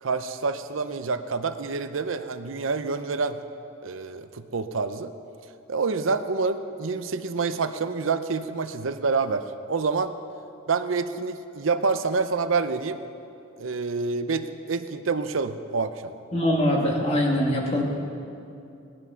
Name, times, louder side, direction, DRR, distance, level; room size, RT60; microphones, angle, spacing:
voice 1, 0.0-3.4 3.8-5.1 5.7-10.1 10.7-13.0 13.6-16.1, right 4 dB, 80° right, 10 dB, 0.7 m, -27 dB
voice 2, 16.3-17.8, equal, 30° left, -1 dB, 2.0 m, -23 dB
18.0 x 11.0 x 5.7 m, 2.6 s
head